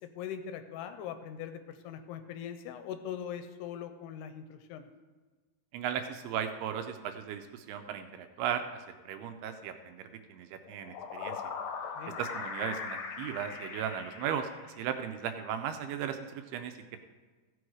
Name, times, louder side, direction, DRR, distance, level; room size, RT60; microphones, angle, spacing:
voice 1, 0.0-4.9 12.0-12.2, left 9 dB, 80° left, 9 dB, 2.6 m, -41 dB
voice 2, 5.7-8.7 9.1-11.4 12.2-14.5 14.8-17.0, right 9 dB, 80° right, 7 dB, 2.5 m, -36 dB
sound 1, 10.6-15.1, left 5 dB, 65° left, 2.1 m, -40 dB
15.0 x 6.2 x 4.9 m, 1.4 s
omnidirectional pair, 4.8 m